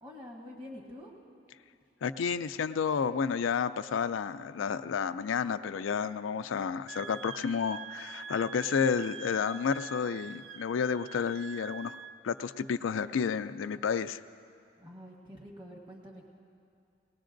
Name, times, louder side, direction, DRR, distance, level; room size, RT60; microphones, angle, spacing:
voice 1, 0.0-1.1 14.8-16.3, left 1 dB, 25° right, -2 dB, 1.5 m, -47 dB
voice 2, 2.0-12.0 12.2-14.2, left 6 dB, 90° left, 11 dB, 0.4 m, -31 dB
Wind instrument woodwind instrument, 6.9-12.2, right 6 dB, 85° right, 0.5 m, -45 dB
20.5 x 19.0 x 2.6 m, 2.4 s
head